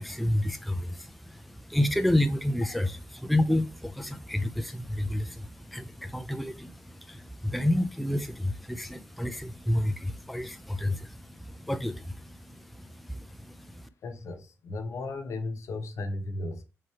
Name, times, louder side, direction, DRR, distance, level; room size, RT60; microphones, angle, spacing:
voice 1, 0.0-13.9, left 1 dB, ahead, 0.4 m, -30 dB
voice 2, 14.0-16.6, left 2 dB, 75° left, 0.8 m, -35 dB
3.7 x 3.2 x 4.3 m
cardioid pair, 90°, 5 cm